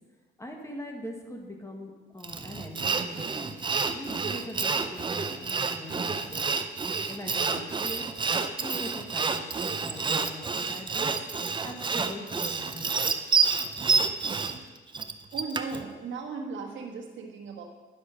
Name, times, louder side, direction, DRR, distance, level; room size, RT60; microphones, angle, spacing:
voice 1, 0.4-3.6 3.9-6.5 7.1-8.1 8.6-11.1 11.6-13.0, left 1 dB, 15° left, 2 dB, 1.5 m, -42 dB
Sawing, 2.2-15.8, right 4 dB, 25° right, 0.6 m, -29 dB
voice 2, 15.3-17.6, right 4 dB, 70° right, 1 dB, 1.4 m, -37 dB
10.5 x 6.1 x 5.0 m, 1.3 s
cardioid pair, 90°, 20 cm